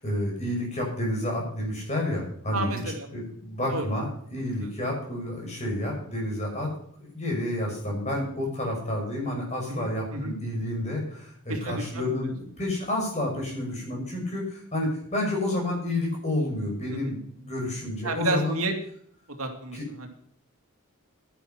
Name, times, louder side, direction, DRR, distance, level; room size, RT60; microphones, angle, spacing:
voice 1, 0.0-2.8 3.1-6.7 7.0-18.6 19.7-19.8, left 1 dB, 30° left, -1 dB, 6.4 m, -30 dB
voice 2, 2.5-3.1 3.7-3.9 4.6-4.7 9.7-10.3 11.5-12.1 16.9-17.1 18.0-18.7 19.3-20.1, right 2 dB, 75° right, 4 dB, 2.5 m, -31 dB
11.5 x 11.0 x 6.0 m, 0.63 s
head